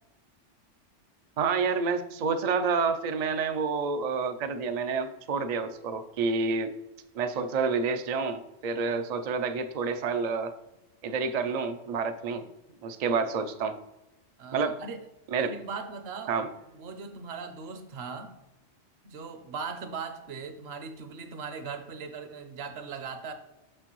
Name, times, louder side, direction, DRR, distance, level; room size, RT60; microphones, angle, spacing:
voice 1, 1.4-6.7 7.1-10.5 11.0-12.5 12.8-13.8 14.5-14.8 15.3-15.5 16.3-16.5, right 5 dB, 85° right, 8 dB, 0.3 m, -29 dB
voice 2, 14.4-15.0 15.4-16.3 16.7-18.4 19.0-23.3, right 5 dB, 60° right, 9 dB, 0.9 m, -39 dB
6.4 x 6.0 x 3.0 m, 0.97 s
omnidirectional pair, 1.3 m